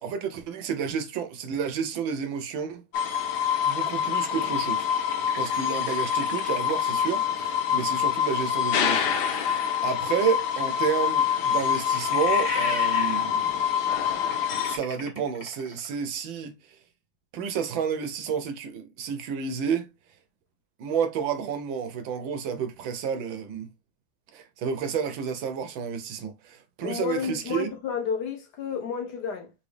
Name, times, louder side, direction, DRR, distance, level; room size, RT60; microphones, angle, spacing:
voice 1, 0.0-2.8 3.6-4.9 5.4-13.5 14.7-16.5 17.3-19.9 20.8-23.7 24.3-27.7, right 7 dB, 80° right, 1.5 m, -30 dB
sound 1, 2.9-14.8, left 8 dB, 85° left, 1.6 m, -26 dB
sound 2, 2.9-7.0 9.9-15.9, left 1 dB, 20° left, 1.4 m, -38 dB
voice 2, 26.8-29.5, left 7 dB, 60° left, 1.3 m, -31 dB
4.0 x 3.2 x 3.3 m
omnidirectional pair, 2.2 m